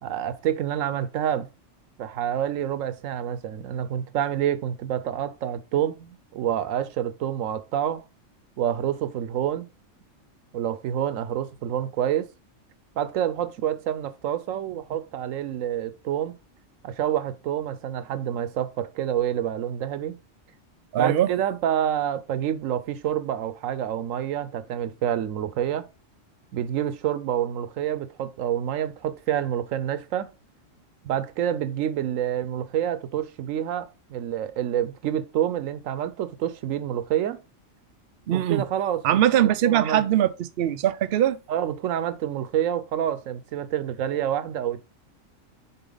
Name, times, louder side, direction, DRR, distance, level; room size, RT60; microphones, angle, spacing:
voice 1, 0.0-1.5 2.0-8.0 8.6-9.7 10.5-12.3 13.0-16.3 16.8-20.2 21.0-25.9 26.5-30.3 31.0-37.4 38.3-39.2 39.6-40.0 41.5-44.8, right 10 dB, 85° right, 1.0 m, -27 dB
voice 2, 20.9-21.3 38.3-38.6 39.0-41.4, right 11 dB, 60° right, 0.7 m, -21 dB
7.0 x 4.1 x 3.9 m
omnidirectional pair, 1.3 m